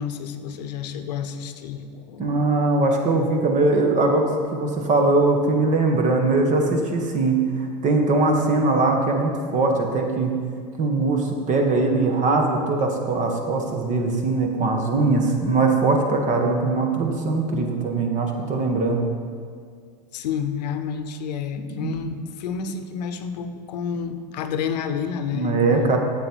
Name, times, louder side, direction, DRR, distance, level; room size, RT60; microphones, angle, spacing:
voice 1, 0.0-2.5 20.1-26.0, left 7 dB, 80° left, 9 dB, 0.8 m, -30 dB
voice 2, 2.2-4.3 4.5-10.3 10.8-19.0 21.8-22.1 25.3-26.0, right 3 dB, 35° right, 3 dB, 1.4 m, -21 dB
8.8 x 7.3 x 4.6 m, 2.1 s
hypercardioid pair, 105°, 21 cm